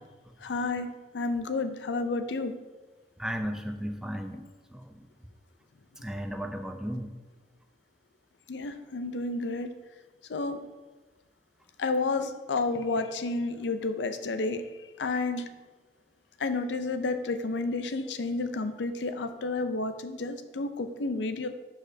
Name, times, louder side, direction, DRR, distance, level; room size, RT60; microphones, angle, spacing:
voice 1, 0.4-0.9 1.1-2.5 8.5-9.7 10.3-10.6 11.8-14.6 15.0-15.4 16.4-21.5, left 3 dB, 85° left, 9 dB, 0.5 m, -30 dB
voice 2, 3.2-5.1 6.0-7.1, equal, 5° right, 5 dB, 0.4 m, -35 dB
11.5 x 4.1 x 2.7 m, 1.2 s
head